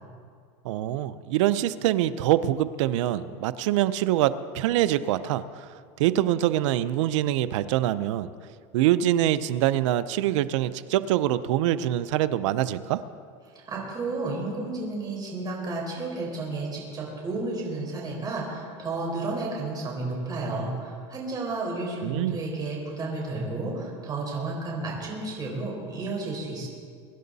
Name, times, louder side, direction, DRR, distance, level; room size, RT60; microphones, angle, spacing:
voice 1, 0.6-5.7 6.0-8.3 8.7-13.0 22.0-22.4, right 13 dB, 80° right, 14 dB, 0.7 m, -24 dB
voice 2, 13.7-26.7, right 2 dB, 25° right, -2 dB, 4.7 m, -32 dB
24.0 x 11.0 x 4.1 m, 2.2 s
supercardioid pair, 135°, 16 cm